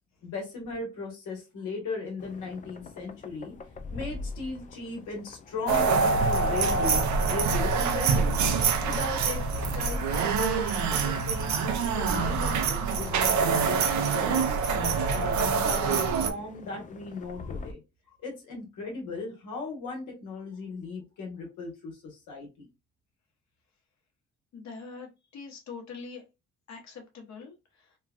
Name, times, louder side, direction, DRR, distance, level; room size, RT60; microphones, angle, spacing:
voice 1, 0.2-3.5 3.9-8.4 8.8-14.5 15.1-17.8 18.1-22.7, left 3 dB, 90° left, 0 dB, 1.4 m, -37 dB
sound 1, 2.2-17.7, left 3 dB, 25° left, 0.3 m, -41 dB
sound 2, 5.7-16.3, right 5 dB, 70° right, 0.6 m, -25 dB
voice 2, 24.5-26.2 26.7-28.0, left 4 dB, 65° left, 3 dB, 1.1 m, -43 dB
3.1 x 2.3 x 2.3 m, 0.26 s
cardioid pair, 90°, 30 cm